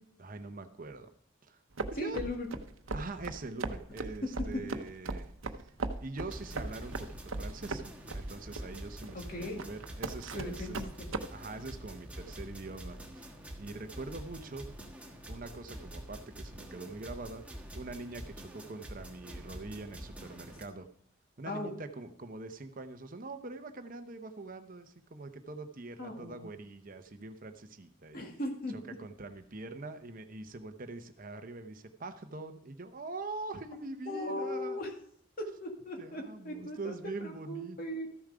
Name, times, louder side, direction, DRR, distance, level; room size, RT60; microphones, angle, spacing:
voice 1, 0.2-1.1 1.4-2.2 2.9-5.7 6.0-10.8 11.3-14.8 15.2-20.9 21.4-28.2 28.9-34.8 36.0-37.8, right 2 dB, 40° right, 8 dB, 0.8 m, -44 dB
sound 1, 1.8-11.3, right 3 dB, 75° right, 0.8 m, -38 dB
voice 2, 2.0-2.5 9.3-9.6 10.3-11.1 21.5-21.7 26.0-26.5 28.1-28.8 34.1-34.9 35.4-36.9 37.2-38.1, left 1 dB, 45° left, 1 dB, 2.5 m, -38 dB
sound 2, 6.3-20.6, right 1 dB, 5° right, 1.4 m, -46 dB
14.0 x 7.1 x 4.9 m, 0.66 s
head